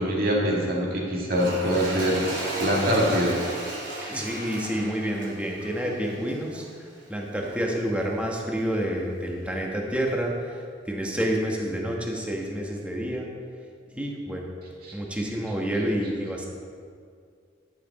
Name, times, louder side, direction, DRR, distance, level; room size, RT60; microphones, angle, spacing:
voice 1, 0.0-2.2 2.6-3.4, equal, 50° right, -3 dB, 2.1 m, -24 dB
Toilet flush, 1.2-6.7 7.4-7.5, right 1 dB, 80° right, 2.9 m, -35 dB
voice 2, 4.1-6.7 7.1-13.3 13.9-14.5 14.9-16.5, equal, 5° right, -1 dB, 1.3 m, -29 dB
12.0 x 7.7 x 4.1 m, 2.2 s
head